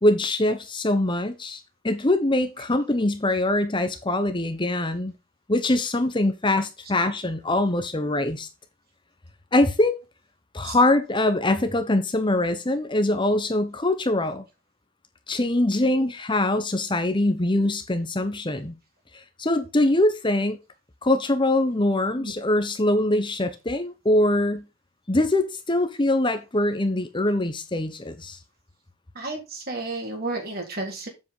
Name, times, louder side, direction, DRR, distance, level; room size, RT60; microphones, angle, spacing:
voice 1, 0.0-5.1 5.5-8.5 9.5-10.0 10.5-14.4 15.3-18.8 19.1-20.6 21.0-24.7 25.1-28.4, left 1 dB, 25° left, 0.9 m, -23 dB
voice 2, 29.1-31.1, right 2 dB, 45° right, 3.5 m, -32 dB
7.7 x 7.3 x 3.8 m
head